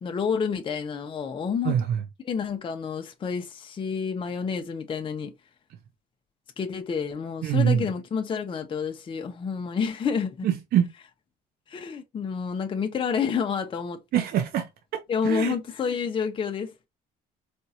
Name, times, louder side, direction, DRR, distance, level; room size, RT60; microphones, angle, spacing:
voice 1, 0.0-1.8 2.2-5.3 6.6-10.5 11.7-14.0 15.1-16.9, left 6 dB, 30° left, 0.6 m, -29 dB
voice 2, 1.6-2.0 7.4-7.9 10.4-10.9 14.1-14.7 15.2-15.5, right 9 dB, 65° right, 0.7 m, -24 dB
4.3 x 2.3 x 2.7 m
cardioid pair, 110°, 17 cm